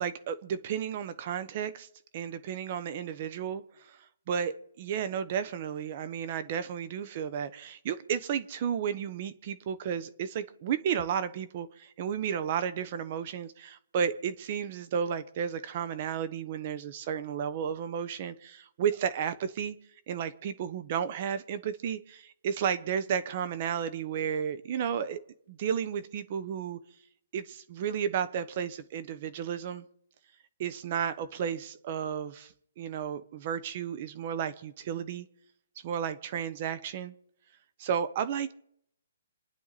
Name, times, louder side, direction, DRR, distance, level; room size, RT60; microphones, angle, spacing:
voice 1, 0.0-1.9 2.1-4.0 4.3-19.8 20.1-25.2 25.5-26.8 27.3-29.8 30.6-35.3 35.8-37.1 37.8-38.5, right 8 dB, 40° right, 13 dB, 1.1 m, -33 dB
28.0 x 10.5 x 4.2 m, 0.72 s
hypercardioid pair, 155°, 0 cm